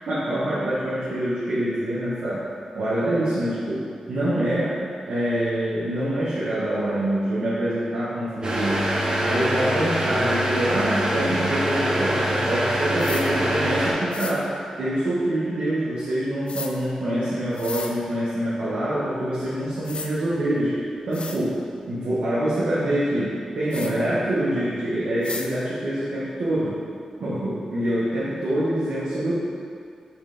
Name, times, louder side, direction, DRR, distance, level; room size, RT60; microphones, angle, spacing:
voice 1, 0.0-2.5 2.7-4.8 5.1-8.9 9.2-14.5 14.8-20.7 21.1-21.6 21.9-26.8 27.2-29.3, right 1 dB, 75° right, -10 dB, 0.9 m, -25 dB
sound 1, 8.4-13.9, equal, 45° right, 0.9 m, -24 dB
sound 2, 13.0-13.3 14.1-14.4 16.5-16.7 17.5-17.9 19.4-19.5 19.8-20.1 20.7-20.8 21.1-21.4 23.7-23.9 25.2-25.5, left 4 dB, 60° left, 0.4 m, -34 dB
4.4 x 3.2 x 3.7 m, 2.3 s
supercardioid pair, 40°, 2 cm